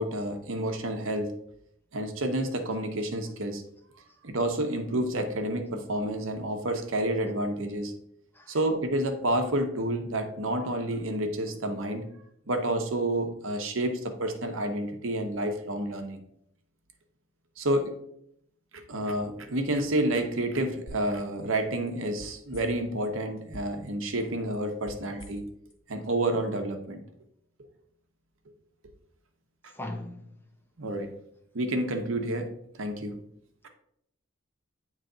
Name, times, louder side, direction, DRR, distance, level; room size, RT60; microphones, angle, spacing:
voice 1, 0.0-1.3 1.9-3.6 4.2-7.9 8.5-12.1 12.5-16.2 17.6-17.9 18.7-25.4 25.9-27.0 30.8-31.1 31.5-32.5 32.8-33.2, right 1 dB, 80° right, 0.9 m, -29 dB
sound 1, 20.9-21.2 21.5-23.0 23.4-23.9 24.2-25.7 26.0-26.1, right 1 dB, 70° left, 1.3 m, -46 dB
voice 2, 29.7-30.4, left 1 dB, 10° left, 0.6 m, -38 dB
9.0 x 3.2 x 3.8 m
head